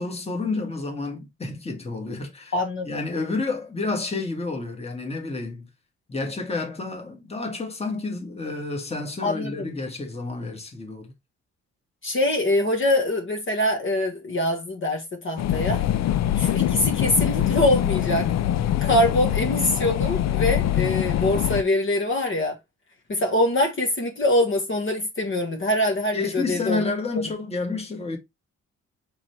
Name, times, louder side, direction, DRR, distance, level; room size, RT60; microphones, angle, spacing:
voice 1, 0.0-2.5 2.8-5.7 6.1-11.1 26.1-28.2, left 3 dB, 20° left, 1.6 m, -30 dB
voice 2, 2.5-2.9 9.2-9.7 12.0-15.8 16.4-18.3 18.8-22.6 23.1-26.8, left 1 dB, 40° left, 1.5 m, -24 dB
sound 1, 15.4-21.6, left 11 dB, 60° left, 0.5 m, -23 dB
4.4 x 3.9 x 3.1 m
cardioid pair, 90°, 30 cm